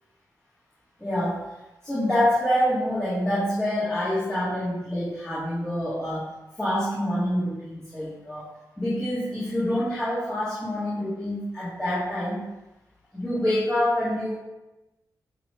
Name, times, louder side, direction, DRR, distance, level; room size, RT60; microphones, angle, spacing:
voice 1, 1.0-1.4 1.8-6.3 6.6-8.5 8.8-12.5 13.1-14.3, left 1 dB, 10° left, -11 dB, 2.3 m, -26 dB
8.4 x 3.1 x 5.0 m, 1.0 s
cardioid pair, 95°, 7 cm